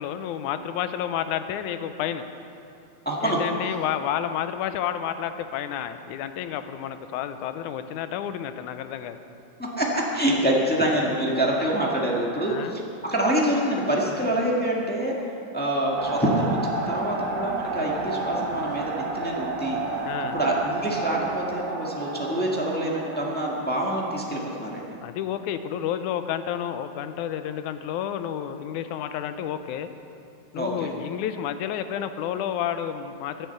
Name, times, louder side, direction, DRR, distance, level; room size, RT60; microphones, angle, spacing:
voice 1, 0.0-2.3 3.2-9.2 12.5-12.7 20.0-20.4 25.0-29.9 30.5-33.5, left 10 dB, 85° left, 10 dB, 2.1 m, -30 dB
voice 2, 3.0-3.4 9.6-15.1 15.5-19.8 20.3-24.9 30.5-30.9, right 1 dB, 10° left, -3 dB, 0.4 m, -26 dB
sound 1, 16.0-24.9, right 3 dB, 55° right, 1.9 m, -31 dB
11.0 x 10.5 x 7.9 m, 2.7 s
omnidirectional pair, 3.5 m